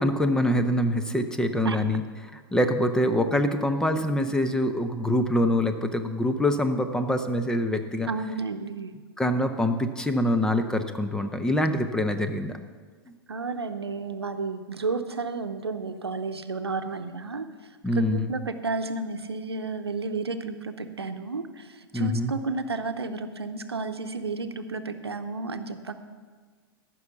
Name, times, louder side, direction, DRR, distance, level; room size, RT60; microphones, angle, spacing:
voice 1, 0.0-2.0 2.5-8.1 9.2-12.5 13.1-13.2 17.8-18.3 21.9-22.3, left 1 dB, 5° left, 7 dB, 0.8 m, -25 dB
voice 2, 8.1-8.9 13.3-17.5 18.0-25.9, right 3 dB, 90° right, 9 dB, 0.8 m, -32 dB
14.0 x 6.2 x 7.0 m, 1.5 s
hypercardioid pair, 105°, 13 cm